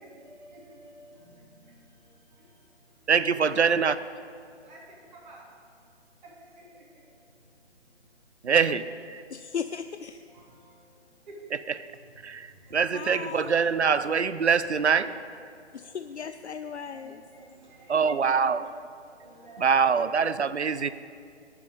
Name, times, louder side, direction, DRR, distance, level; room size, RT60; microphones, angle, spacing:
voice 1, 0.0-3.1 3.4-3.9 4.4-5.9 6.2-8.5 10.3-11.6 11.9-13.0 13.5-13.8 14.6-14.7 15.0-15.1 15.5-16.0 16.9-18.2 18.6-18.7 19.0-19.8, right 2 dB, 40° right, -4 dB, 3.5 m, -51 dB
voice 2, 3.1-4.0 8.4-9.2 12.2-15.1 17.9-18.6 19.6-20.9, right 6 dB, 75° right, 14 dB, 0.7 m, -24 dB
voice 3, 9.3-10.2 12.9-13.5 15.7-17.2, left 7 dB, 75° left, 10 dB, 0.5 m, -36 dB
18.5 x 7.5 x 4.9 m, 2.3 s
figure-of-eight pair, 145°, 34 cm